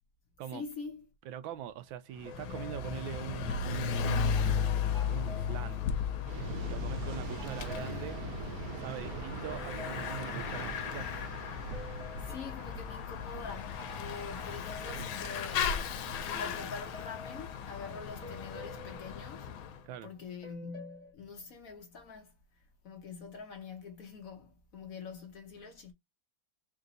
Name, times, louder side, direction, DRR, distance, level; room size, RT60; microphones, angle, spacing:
voice 1, 0.5-1.1 12.2-19.5 20.0-22.4 22.8-25.9, left 4 dB, 65° left, 0.9 m, -45 dB
voice 2, 1.3-4.3 5.1-5.8 6.6-8.2 8.8-11.1 19.8-20.1, right 11 dB, 80° right, 1.3 m, -43 dB
sound 1, 1.5-1.8 2.3-6.5 7.1-11.3 11.7-16.0 16.3-20.0 20.4-21.1, left 3 dB, 20° right, 0.9 m, -51 dB
Bicycle / Mechanisms, 2.2-19.8, left 7 dB, 85° left, 1.5 m, -36 dB
Waves surf, 6.2-16.8, right 4 dB, 60° right, 1.0 m, -43 dB
3.8 x 2.7 x 3.8 m
omnidirectional pair, 2.2 m